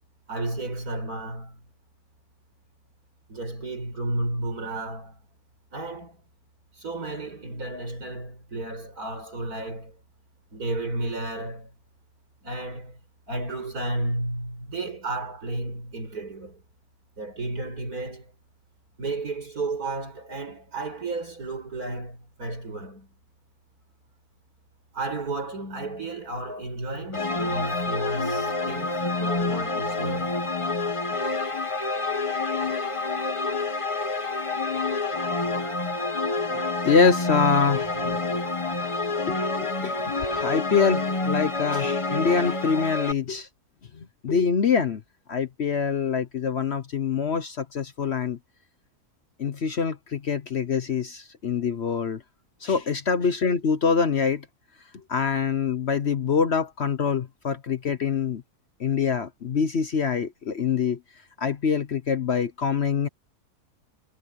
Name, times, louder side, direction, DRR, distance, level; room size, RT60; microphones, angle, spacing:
voice 1, 0.3-1.6 3.3-5.2 5.7-6.2 6.7-10.0 10.5-11.7 12.4-13.0 13.3-16.6 17.2-18.3 19.0-23.1 24.9-30.4, right 2 dB, 70° right, 6.4 m, -32 dB
sound 1, 27.1-43.1, left 3 dB, 25° left, 1.0 m, -28 dB
voice 2, 36.5-38.2 39.3-43.5 44.0-45.0 45.3-48.4 49.4-52.2 52.6-54.4 55.1-58.4 58.8-61.0 61.4-63.1, left 6 dB, 50° left, 1.0 m, -25 dB
omnidirectional pair, 1.6 m